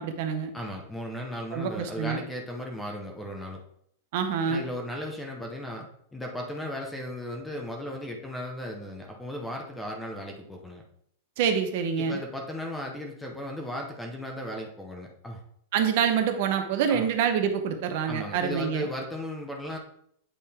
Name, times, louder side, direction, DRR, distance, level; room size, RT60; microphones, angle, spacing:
voice 1, 0.0-0.5 1.5-2.2 4.1-4.6 11.4-12.2 15.7-18.9, right 7 dB, 45° right, 7 dB, 0.7 m, -26 dB
voice 2, 0.5-3.6 4.5-10.8 12.0-15.4 16.9-17.1 18.1-19.8, left 1 dB, 5° left, 2 dB, 0.7 m, -36 dB
8.5 x 3.6 x 4.2 m, 0.69 s
supercardioid pair, 175°, 0 cm